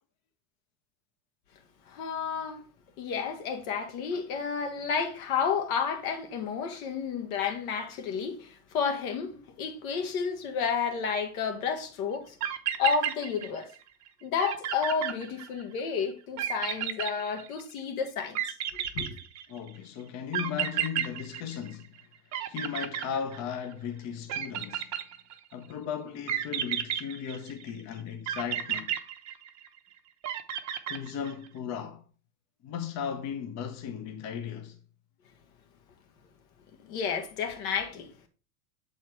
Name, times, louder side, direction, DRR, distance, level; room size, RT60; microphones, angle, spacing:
voice 1, 1.9-2.6 3.0-9.3 9.6-12.4 12.8-13.7 14.2-18.4 18.9-19.2 36.9-38.1, left 6 dB, 65° left, 1.5 m, -31 dB
sound 1, 12.1-12.2 12.4-13.8 14.1-14.2 14.4-15.8 16.4-17.8 18.3-19.7 20.3-22.0 22.3-23.7 24.3-25.5 26.3-27.7 28.3-29.8 30.2-31.5, right 10 dB, 40° right, 0.9 m, -32 dB
voice 2, 19.5-21.9 22.5-24.9 25.5-29.0 30.9-32.0 32.6-34.8, left 8 dB, 35° left, 0.9 m, -36 dB
7.4 x 4.3 x 4.6 m
hypercardioid pair, 95°, 45 cm